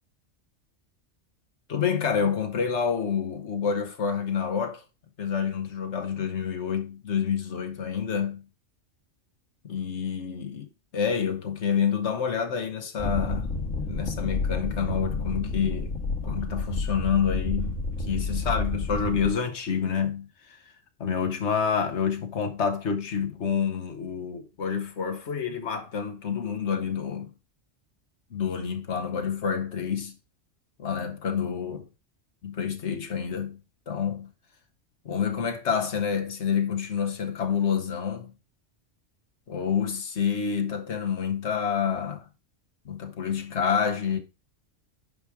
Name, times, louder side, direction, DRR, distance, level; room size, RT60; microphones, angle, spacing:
voice 1, 1.7-4.8 5.2-8.4 9.6-10.6 10.9-13.5 13.9-15.9 16.2-20.3 21.0-27.3 28.3-30.2 30.8-31.8 32.4-33.6 33.9-34.3 35.0-38.3 39.5-42.2 42.8-44.2, left 7 dB, 65° left, 1.6 m, -28 dB
sound 1, 13.0-19.3, left 3 dB, 85° left, 2.4 m, -30 dB
8.8 x 5.2 x 4.8 m
omnidirectional pair, 1.3 m